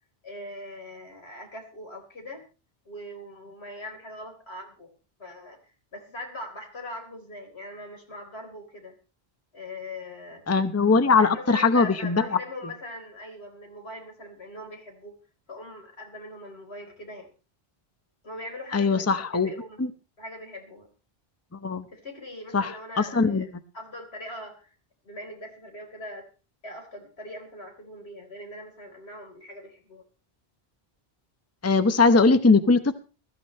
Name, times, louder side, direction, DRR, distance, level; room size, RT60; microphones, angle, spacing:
voice 1, 0.2-2.4 2.8-4.9 5.2-5.6 5.9-8.9 9.5-10.4 11.2-15.2 15.5-17.3 18.2-19.8 20.2-20.9 21.9-23.5 23.7-24.7 25.0-26.3 26.6-30.0, left 1 dB, 80° left, 3 dB, 4.4 m, -41 dB
voice 2, 10.5-12.2 18.7-19.5 19.8-19.9 21.6-21.8 22.5-23.5 31.6-32.9, left 4 dB, 15° left, 11 dB, 0.8 m, -21 dB
21.5 x 13.5 x 3.2 m, 0.33 s
omnidirectional pair, 1.1 m